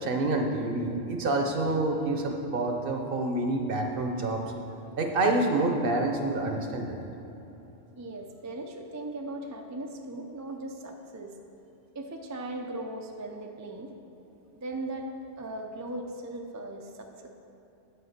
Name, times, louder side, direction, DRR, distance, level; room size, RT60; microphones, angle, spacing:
voice 1, 0.0-4.4 5.0-6.9, right 2 dB, 55° right, 3 dB, 0.9 m, -27 dB
voice 2, 4.4-5.0 8.0-11.3 11.9-13.9 14.6-15.1 15.4-17.3, right 2 dB, 25° right, 2 dB, 0.4 m, -38 dB
9.1 x 4.9 x 6.5 m, 3.0 s
omnidirectional pair, 1.2 m